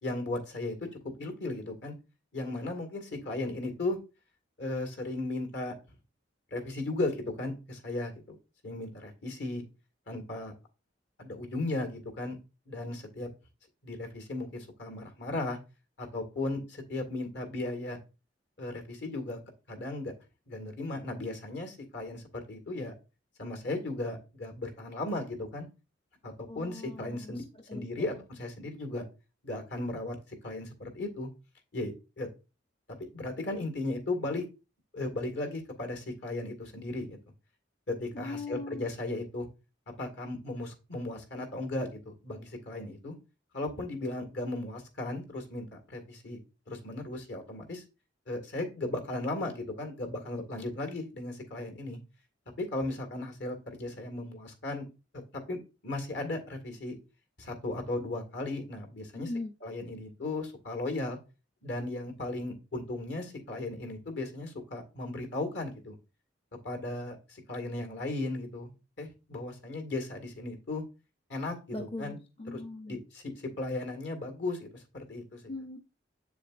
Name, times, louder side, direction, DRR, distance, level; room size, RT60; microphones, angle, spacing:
voice 1, 0.0-2.0 2.3-4.0 4.6-5.7 6.5-8.4 8.6-9.6 10.1-10.5 11.2-12.4 12.7-13.3 13.8-15.6 16.0-18.0 18.6-19.4 19.7-20.1 20.5-22.9 23.4-25.7 26.2-27.4 27.7-29.0 29.4-30.2 30.4-31.3 31.7-32.3 33.1-34.4 34.9-37.2 37.9-39.5 40.0-43.2 43.5-46.4 46.7-47.8 48.3-52.0 52.6-54.9 55.5-57.0 57.4-59.3 59.6-61.2 61.6-66.0 66.6-70.8 71.3-72.2 72.5-72.6 72.9-75.4, left 2 dB, 65° left, 2.1 m, -36 dB
voice 2, 26.5-28.2 38.1-38.9 59.1-59.5 71.7-73.0 75.5-75.8, left 2 dB, 30° left, 0.6 m, -40 dB
7.5 x 7.0 x 2.6 m
head